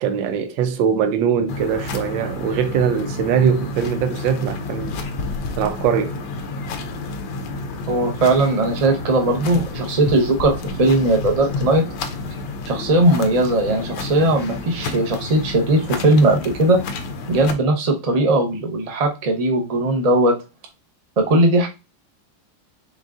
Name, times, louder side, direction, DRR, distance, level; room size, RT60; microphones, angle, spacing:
voice 1, 0.0-5.0 5.6-6.2, right 7 dB, 80° right, 1.3 m, -21 dB
sound 1, 1.5-17.5, left 3 dB, 75° left, 1.3 m, -30 dB
voice 2, 7.9-11.8 12.7-16.8 17.3-20.3 21.2-21.7, right 2 dB, 40° right, 0.5 m, -18 dB
5.4 x 3.8 x 2.4 m
omnidirectional pair, 2.0 m